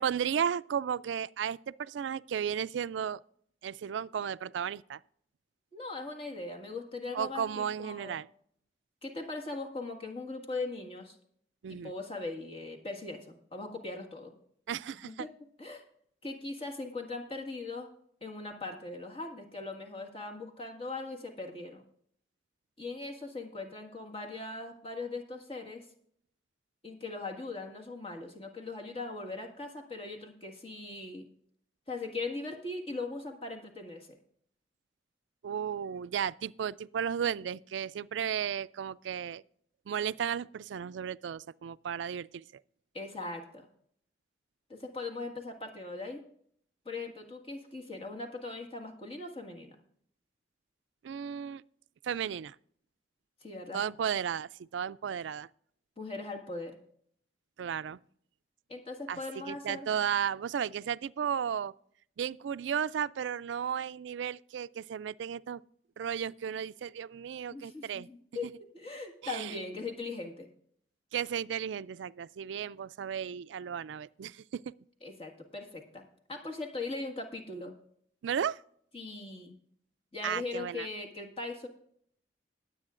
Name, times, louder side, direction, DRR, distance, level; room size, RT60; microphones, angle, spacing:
voice 1, 0.0-3.2 3.6-5.0 7.1-8.3 11.6-11.9 14.7-15.3 35.4-39.4 39.9-42.4 51.0-51.6 52.0-52.6 53.7-55.5 57.6-58.0 59.1-59.2 59.5-61.7 62.2-65.6 66.0-68.1 68.4-68.5 69.2-69.5 71.1-74.6 78.2-78.6 80.2-80.9, right 8 dB, 85° right, 0.3 m, -34 dB
voice 2, 5.7-8.2 9.0-11.2 11.7-14.3 15.0-15.3 15.6-15.8 16.2-17.9 18.2-21.8 22.8-25.8 26.8-31.3 31.9-34.1 42.9-43.7 44.7-46.2 46.9-49.8 53.4-53.8 56.0-56.8 58.7-59.9 67.5-70.5 75.0-76.0 76.3-77.7 78.9-79.5 80.1-81.7, left 3 dB, 30° left, 1.7 m, -40 dB
21.0 x 8.2 x 2.5 m
head